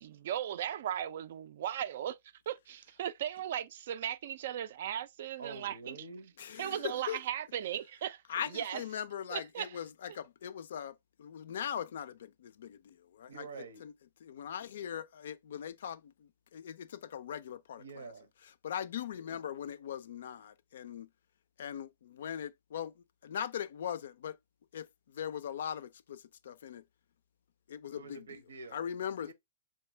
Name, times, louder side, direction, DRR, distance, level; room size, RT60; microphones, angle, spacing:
voice 1, 0.0-2.2 2.5-6.0 6.6-8.8 9.3-9.8, right 10 dB, 60° right, 0.3 m, -37 dB
voice 2, 5.4-6.3 13.3-13.8 17.8-18.3 28.0-29.3, right 4 dB, 80° right, 0.7 m, -47 dB
voice 3, 6.4-7.2 8.3-13.5 13.8-13.9 14.2-18.1 18.6-21.1 21.6-22.9 23.2-24.4 24.7-24.9 25.1-26.8 27.7-28.3 28.7-29.3, left 9 dB, 70° left, 0.4 m, -40 dB
3.4 x 2.7 x 3.1 m
hypercardioid pair, 125°, 0 cm